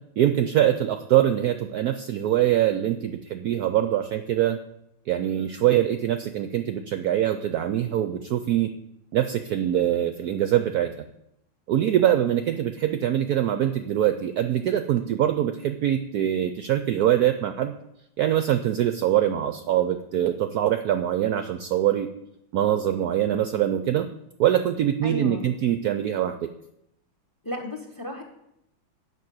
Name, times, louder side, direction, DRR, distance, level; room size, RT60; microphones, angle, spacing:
voice 1, 0.2-4.6 5.1-8.7 9.1-10.9 11.7-17.7 18.2-22.1 22.5-24.1 24.4-26.5, right 11 dB, 70° right, 9 dB, 0.9 m, -23 dB
voice 2, 25.0-25.5 27.4-28.2, left 1 dB, 15° left, 5 dB, 1.1 m, -34 dB
9.4 x 5.5 x 7.8 m, 0.80 s
omnidirectional pair, 2.1 m